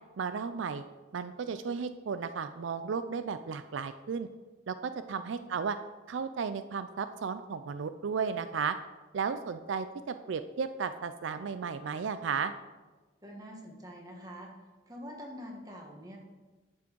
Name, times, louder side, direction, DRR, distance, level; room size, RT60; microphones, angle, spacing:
voice 1, 0.2-0.8 1.1-4.3 4.7-5.8 6.1-8.7 9.1-12.5, right 6 dB, 80° right, 11 dB, 0.4 m, -34 dB
voice 2, 13.2-14.5 14.9-16.2, equal, 20° right, 0 dB, 1.4 m, -45 dB
10.5 x 6.2 x 4.6 m, 1.2 s
head